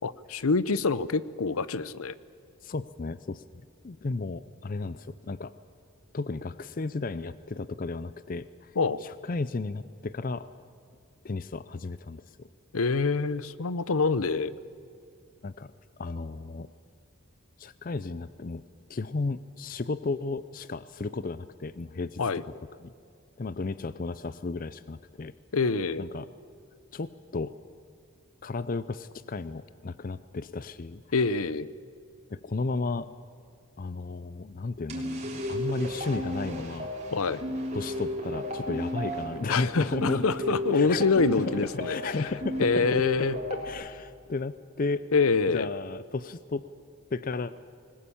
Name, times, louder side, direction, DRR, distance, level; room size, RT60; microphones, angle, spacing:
voice 1, 0.0-2.1 8.8-9.0 12.7-14.5 22.2-22.4 25.5-26.0 31.1-31.7 37.1-37.4 39.5-42.2 42.6-43.4 45.1-45.7, left 4 dB, 75° left, 17 dB, 0.7 m, -26 dB
voice 2, 2.6-3.4 3.8-5.5 6.1-8.7 9.0-10.5 11.2-12.5 15.4-15.7 16.0-16.7 17.6-18.6 18.9-22.5 22.8-22.9 23.4-25.3 26.0-26.3 26.9-27.5 28.4-31.0 32.3-33.1 33.8-36.9 37.7-40.2 40.7-41.1 41.7-42.9 43.5-45.0 45.5-46.6 47.1-47.5, left 3 dB, 40° left, 15 dB, 0.5 m, -34 dB
sound 1, 34.9-43.7, equal, 30° right, 3.7 m, -34 dB
20.5 x 20.0 x 8.6 m, 2.5 s
head